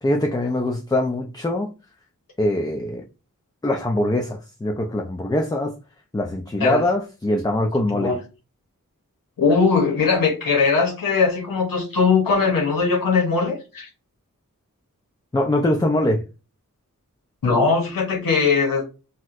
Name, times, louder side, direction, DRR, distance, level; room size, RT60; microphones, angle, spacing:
voice 1, 0.0-1.7 2.4-3.0 3.6-5.7 6.1-8.1 15.3-16.2, left 1 dB, 10° left, 0.5 m, -22 dB
voice 2, 9.4-13.9 17.4-18.8, left 4 dB, 85° left, 0.8 m, -20 dB
4.2 x 2.1 x 2.4 m
cardioid pair, 40°, 33 cm